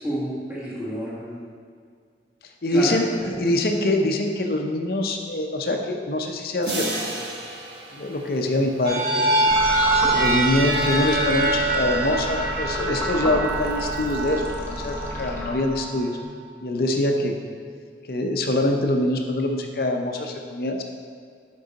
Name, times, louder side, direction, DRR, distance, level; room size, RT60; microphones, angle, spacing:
voice 1, 0.0-1.4 2.7-3.4, equal, 5° right, -10 dB, 1.5 m, -30 dB
voice 2, 2.6-7.3 7.9-9.5 10.1-16.2 16.6-17.4 18.1-20.8, left 1 dB, 55° left, 3 dB, 0.6 m, -24 dB
sound 1, 6.6-9.1, right 2 dB, 80° right, 1.1 m, -33 dB
sound 2, 8.8-16.2, right 2 dB, 55° right, 1.4 m, -24 dB
sound 3, 9.5-16.0, left 1 dB, 15° left, 0.8 m, -32 dB
6.6 x 5.4 x 4.0 m, 2.1 s
head